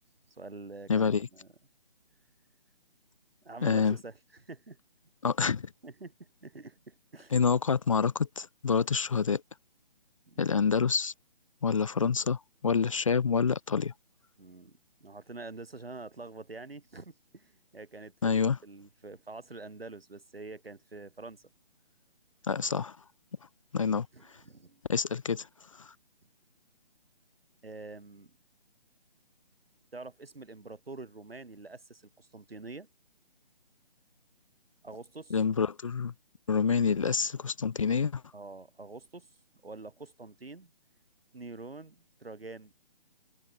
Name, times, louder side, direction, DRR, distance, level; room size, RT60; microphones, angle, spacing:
voice 1, 0.3-1.5 3.4-4.8 5.8-6.1 6.4-7.3 10.3-10.5 14.4-21.4 24.1-24.8 27.6-28.3 29.9-32.9 34.8-35.4 38.3-39.3 39.6-40.7 41.3-42.7, right 3 dB, 80° right, 7.7 m, -46 dB
voice 2, 0.9-1.3 3.6-4.0 5.2-5.7 7.3-9.4 10.4-11.1 11.6-13.9 18.2-18.6 22.5-23.0 23.7-24.1 24.9-25.5 25.8-25.9 35.3-36.1 36.5-38.2, left 6 dB, 35° left, 0.5 m, -27 dB
figure-of-eight pair, 150°, 29 cm